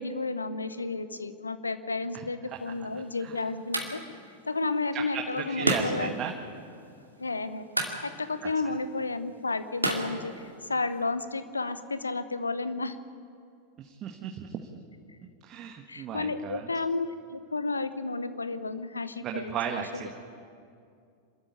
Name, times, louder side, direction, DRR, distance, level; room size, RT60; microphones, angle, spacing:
voice 1, 0.0-4.0 4.5-6.1 7.2-7.7 8.0-13.0 15.9-20.0, left 3 dB, 80° left, 12 dB, 1.0 m, -32 dB
sound 1, 2.5-11.0, right 1 dB, 85° right, 2.4 m, -35 dB
voice 2, 4.9-6.3 8.4-8.5 13.8-14.6 15.2-16.7 19.2-20.1, right 8 dB, 30° right, 2 dB, 1.6 m, -35 dB
26.0 x 13.5 x 9.7 m, 2.4 s
figure-of-eight pair, 90°, 0 cm